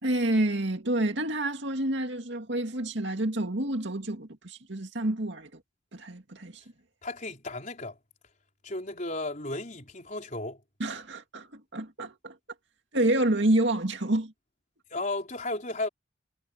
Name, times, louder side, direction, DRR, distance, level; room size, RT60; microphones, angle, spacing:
voice 1, 0.0-5.5 5.9-6.6 10.8-12.4 12.9-14.3, right 1 dB, 60° right, 2.4 m, -28 dB
voice 2, 7.0-8.0 8.6-10.6 14.9-15.9, left 2 dB, 40° left, 4.7 m, -34 dB
head